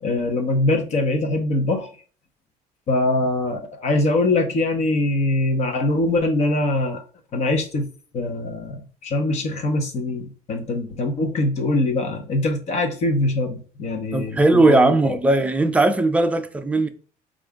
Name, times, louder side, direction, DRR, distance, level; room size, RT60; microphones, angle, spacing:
voice 1, 0.0-1.9 2.9-7.0 7.3-7.9 8.1-15.1, left 2 dB, 45° left, 0.9 m, -23 dB
voice 2, 14.1-16.9, right 2 dB, 10° right, 0.4 m, -18 dB
4.7 x 2.5 x 3.5 m
cardioid pair, 150°, 15 cm